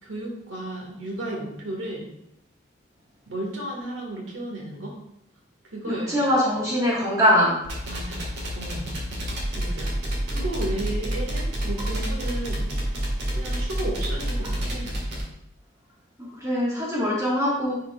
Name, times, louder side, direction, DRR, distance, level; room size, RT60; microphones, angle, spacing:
voice 1, 0.0-2.1 3.3-5.0 5.7-6.2 7.9-8.2 8.5-8.9 9.6-10.0 10.3-12.7 13.3-14.9, right 1 dB, 80° right, -1 dB, 1.7 m, -33 dB
voice 2, 5.8-7.6 16.2-17.8, equal, 15° right, -5 dB, 1.5 m, -22 dB
sound 1, 7.6-15.2, right 1 dB, 55° right, 1.6 m, -28 dB
9.5 x 4.7 x 2.3 m, 0.79 s
head